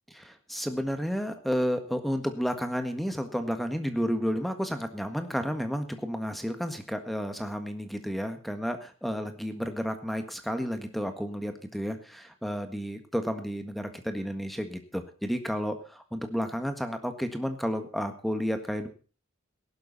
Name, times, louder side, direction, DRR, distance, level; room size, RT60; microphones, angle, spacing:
voice 1, 0.1-18.9, equal, ahead, 7 dB, 1.6 m, -31 dB
17.5 x 12.0 x 4.1 m, 0.37 s
head